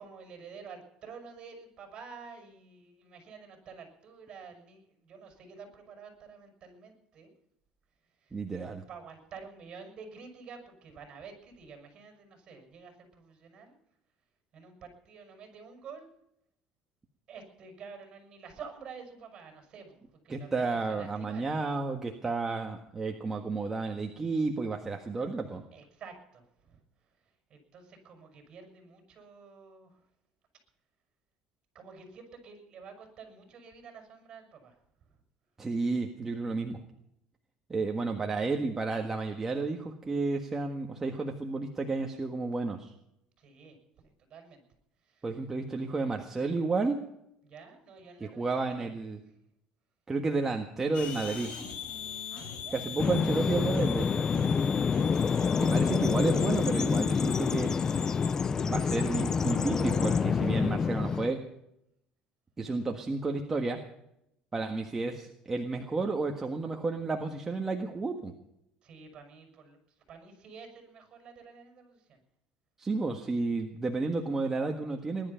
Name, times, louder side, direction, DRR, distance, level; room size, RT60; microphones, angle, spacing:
voice 1, 0.0-7.3 8.2-8.4 8.9-13.8 14.5-16.1 17.3-21.5 25.7-26.8 27.5-30.0 31.7-34.8 37.8-37.9 43.4-43.8 44.2-44.6 45.0-45.3 47.4-48.5 48.8-49.0 52.3-52.8 54.9-55.2 68.8-69.8 70.1-72.2, right 5 dB, 40° right, 5 dB, 6.4 m, -49 dB
voice 2, 8.3-8.8 20.3-25.6 35.6-36.8 37.7-42.9 45.2-47.0 48.2-49.2 50.1-51.5 52.7-54.2 55.6-57.7 58.6-61.4 62.6-63.8 64.5-68.3 72.8-75.3, right 3 dB, 20° right, 3 dB, 1.5 m, -31 dB
sound 1, 50.9-58.3, left 8 dB, 55° left, 4.8 m, -42 dB
Bird vocalization bird call bird song, 53.0-61.3, left 5 dB, 25° left, 0.5 m, -27 dB
20.5 x 11.5 x 5.8 m, 0.78 s
cardioid pair, 125°, 2 cm